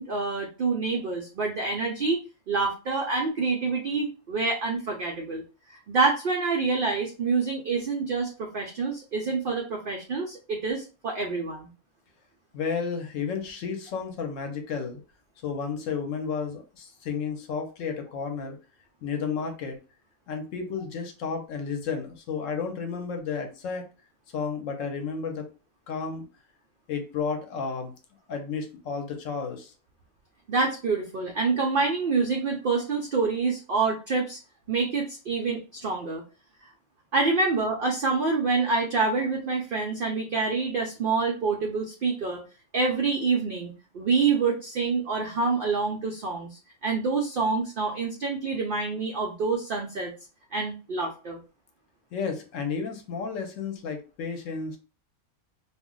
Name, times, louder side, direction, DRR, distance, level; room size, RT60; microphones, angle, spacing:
voice 1, 0.0-2.2 2.5-5.4 5.7-11.7 30.5-34.4 34.7-36.2 37.1-42.4 42.7-46.5 46.8-50.1 50.5-51.4, right 4 dB, 85° right, 1 dB, 0.4 m, -27 dB
voice 2, 12.5-15.0 15.4-18.6 19.0-19.8 20.3-23.9 24.3-25.5 25.9-26.3 26.9-27.9 28.3-29.7 52.1-54.8, left 5 dB, 65° left, 4 dB, 1.0 m, -32 dB
2.5 x 2.1 x 3.6 m, 0.34 s
omnidirectional pair, 1.5 m